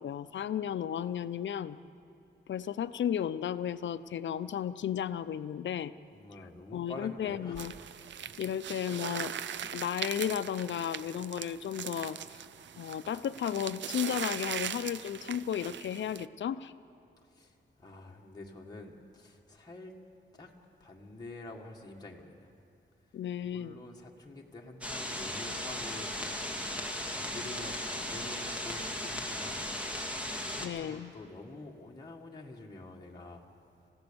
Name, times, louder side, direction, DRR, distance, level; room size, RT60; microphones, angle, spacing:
voice 1, 0.0-1.8 2.5-5.9 6.7-7.7 8.4-9.3 9.7-12.2 12.8-16.7 23.1-23.8 30.6-31.1, left 9 dB, 80° left, 13 dB, 0.6 m, -34 dB
voice 2, 6.1-7.7 8.4-8.5 17.3-20.0 20.3-20.5 20.8-22.5 23.4-26.4 26.8-29.7 30.5-33.5, left 2 dB, 20° left, -1 dB, 1.8 m, -47 dB
sound 1, 7.6-16.3, right 9 dB, 80° right, 0.5 m, -40 dB
sound 2, 24.8-30.7, left 1 dB, 5° right, 2.0 m, -36 dB
28.0 x 16.0 x 7.0 m, 2.6 s
wide cardioid pair, 130°, 19 cm